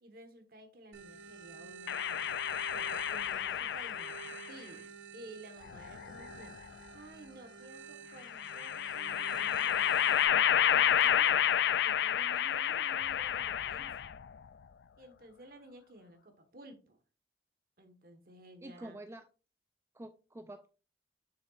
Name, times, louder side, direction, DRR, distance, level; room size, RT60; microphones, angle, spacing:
voice 1, 0.0-2.4 2.7-4.9 5.1-11.4 11.8-14.1 15.0-17.0 17.8-19.0, right 1 dB, 55° right, 7 dB, 1.3 m, -53 dB
sound 1, 0.9-10.3, right 7 dB, 80° right, 0.9 m, -50 dB
sound 2, 1.9-4.5 5.6-6.6 8.2-14.2, left 9 dB, 70° left, 0.3 m, -30 dB
voice 2, 18.6-19.3 19.9-20.7, right 1 dB, 15° right, 9 dB, 0.3 m, -47 dB
6.8 x 6.6 x 2.4 m, 0.35 s
head